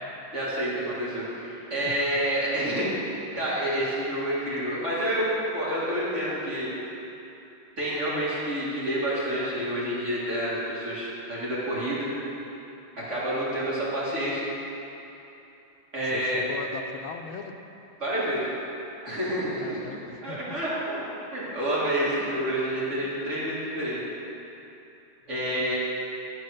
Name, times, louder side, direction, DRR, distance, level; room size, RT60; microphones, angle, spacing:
voice 1, 0.3-2.9 3.3-6.7 7.8-12.1 13.0-14.4 15.9-16.4 18.0-18.4 19.0-19.8 20.2-24.0 25.3-25.8, right 1 dB, 35° right, -8 dB, 2.1 m, -28 dB
voice 2, 16.0-17.5 19.5-20.6 25.4-25.8, left 6 dB, 85° left, 5 dB, 1.4 m, -40 dB
11.0 x 4.6 x 6.4 m, 2.9 s
omnidirectional pair, 2.2 m